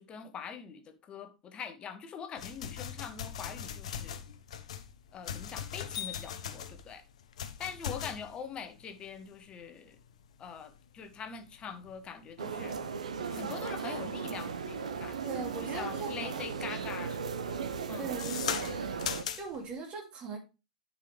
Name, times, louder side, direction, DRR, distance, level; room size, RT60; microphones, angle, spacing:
voice 1, 0.0-4.2 5.1-7.0 7.6-10.0 10.4-12.9 13.3-18.1, left 6 dB, 25° left, 1.2 m, -43 dB
sound 1, 2.4-15.7 16.1-16.5 16.8-19.7, left 8 dB, 60° left, 0.9 m, -40 dB
sound 2, 12.4-19.2, right 5 dB, 70° right, 1.0 m, -36 dB
voice 2, 15.2-16.4 18.0-19.0 19.3-20.4, right 4 dB, 30° right, 2.7 m, -40 dB
9.9 x 5.6 x 3.4 m
figure-of-eight pair, 95°, 4 cm